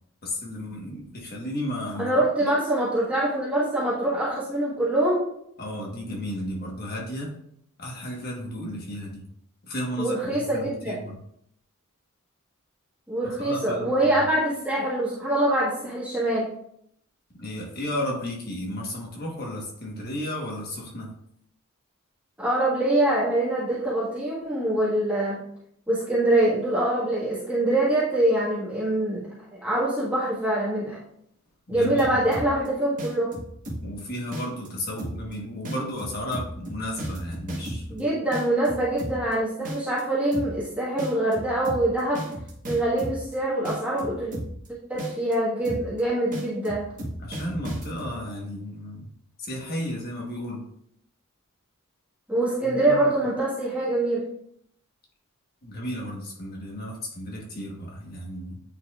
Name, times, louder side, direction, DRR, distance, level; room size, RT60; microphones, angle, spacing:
voice 1, 0.2-2.1 2.4-2.5 5.6-7.3 7.8-9.3 9.7-11.2 13.4-14.2 17.4-21.2 31.7-32.2 33.8-38.1 47.2-49.1 49.4-50.7 52.6-53.1 55.6-58.6, left 1 dB, 45° left, -1 dB, 1.4 m, -33 dB
voice 2, 2.0-5.2 10.0-11.0 13.1-16.5 22.4-25.4 25.9-29.2 29.5-31.0 31.7-33.3 37.9-42.2 42.6-44.3 44.9-46.9 52.3-54.2, right 1 dB, 5° right, -9 dB, 1.6 m, -24 dB
sound 1, 31.7-32.7 33.0-34.0 34.3-34.7 35.0-35.3 35.7-38.0 38.3-39.3 39.7-40.0 40.3-40.7 41.0-43.3 43.7-44.7 45.0-45.3 45.7-46.0 46.3-48.1, equal, 40° right, 1.4 m, -34 dB
8.9 x 4.3 x 2.5 m, 0.72 s
head